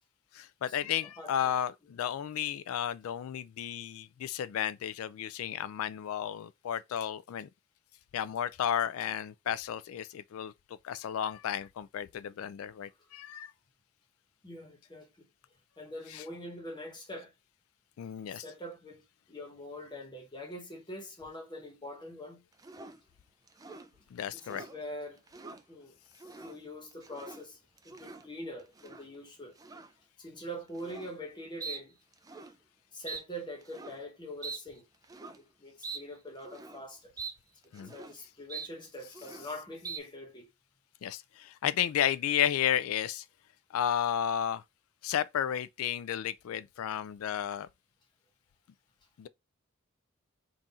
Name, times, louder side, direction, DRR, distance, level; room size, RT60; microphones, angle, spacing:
voice 1, 0.3-7.5 8.1-10.5 10.8-13.5 16.1-16.2 18.0-18.4 24.1-24.6 37.7-37.9 41.0-43.2 43.7-44.6 45.0-47.7 49.2-49.3, left 10 dB, 75° left, 0.3 m, -33 dB
voice 2, 1.2-1.5 14.4-15.3 15.8-17.3 18.3-22.4 24.3-25.2 25.7-26.0 26.4-27.6 27.8-29.6 30.2-32.0 32.9-34.8 35.3-37.1 37.7-40.5, equal, 20° left, 1.0 m, -44 dB
sound 1, 22.6-23.0 23.5-23.9 24.4-24.8 25.2-25.6 26.1-26.6 26.9-27.4 27.8-28.3 28.7-29.1 29.6-29.9 30.7-31.1 31.6-31.8 32.1-32.5 33.1-33.2 33.6-34.0 34.4-34.6 35.0-35.4 35.8-36.0 36.4-36.8 37.2-37.3 37.6-38.1 38.5-38.7 39.0-39.5 39.8-40.0, right 5 dB, 15° right, 0.4 m, -43 dB
3.8 x 2.4 x 4.1 m
head